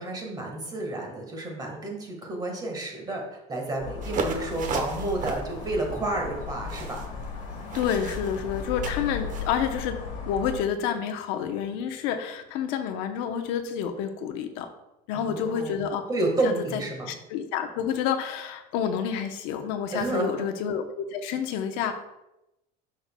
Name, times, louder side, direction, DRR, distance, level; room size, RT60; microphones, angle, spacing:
voice 1, 0.0-7.0 15.1-15.7 16.1-17.1 19.9-20.5, right 2 dB, 20° right, 1 dB, 1.6 m, -30 dB
sound 1, 3.8-10.6, left 5 dB, 40° left, 1.5 m, -36 dB
sound 2, 4.0-9.5, right 4 dB, 45° right, 0.9 m, -36 dB
voice 2, 7.7-10.0 10.3-14.7 15.1-16.0 16.7-16.8 17.1-21.9, left 8 dB, 80° left, 6 dB, 0.9 m, -29 dB
9.0 x 6.4 x 2.3 m, 0.90 s
cardioid pair, 145°, 19 cm